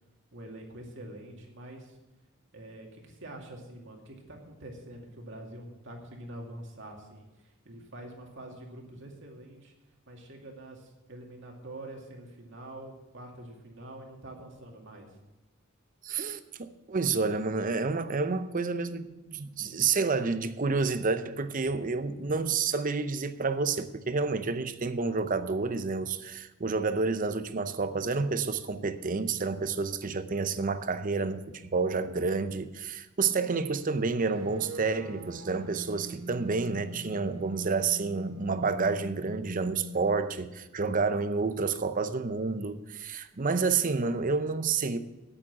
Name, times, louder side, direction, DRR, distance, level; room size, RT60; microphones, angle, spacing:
voice 1, 0.3-2.0 2.5-9.7 10.1-15.1, right 1 dB, 65° right, 2.3 m, -45 dB
voice 2, 16.0-45.0, right 4 dB, 40° right, 0.7 m, -29 dB
sound 1, 34.2-40.3, right 1 dB, 85° right, 2.2 m, -42 dB
8.8 x 8.8 x 7.3 m
head